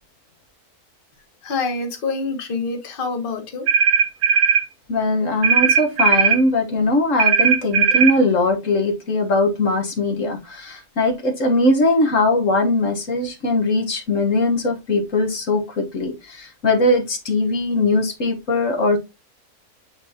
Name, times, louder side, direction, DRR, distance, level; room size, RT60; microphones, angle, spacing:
voice 1, 1.4-3.7, left 4 dB, 40° left, 1.3 m, -26 dB
sound 1, 3.7-4.7 5.4-6.4 7.2-8.2, right 5 dB, 55° right, 1.1 m, -17 dB
voice 2, 4.9-19.0, left 2 dB, 65° left, 1.7 m, -20 dB
8.9 x 4.0 x 2.9 m
omnidirectional pair, 1.5 m